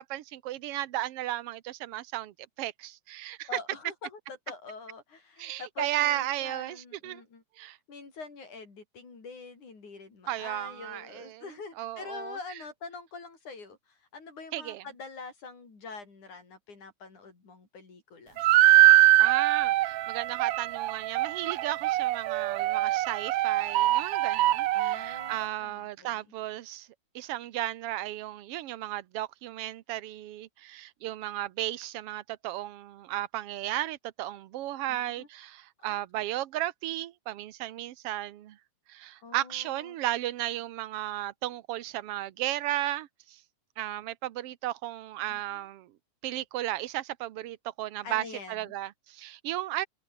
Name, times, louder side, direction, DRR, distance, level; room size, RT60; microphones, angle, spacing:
voice 1, 0.0-3.6 5.4-7.2 7.6-7.8 10.3-11.5 11.8-12.4 14.5-14.8 19.2-26.9 27.2-38.6 38.9-43.4 43.8-46.0 46.2-49.9, right 14 dB, 65° right, 1.7 m, -34 dB
voice 2, 3.5-4.2 4.5-7.4 7.9-18.4 24.7-26.2 34.9-35.3 35.8-36.0 39.2-40.0 45.3-45.6 48.0-48.7, left 4 dB, 80° left, 7.4 m, -45 dB
sound 1, 18.4-25.4, right 16 dB, 90° right, 1.3 m, -23 dB
omnidirectional pair, 3.4 m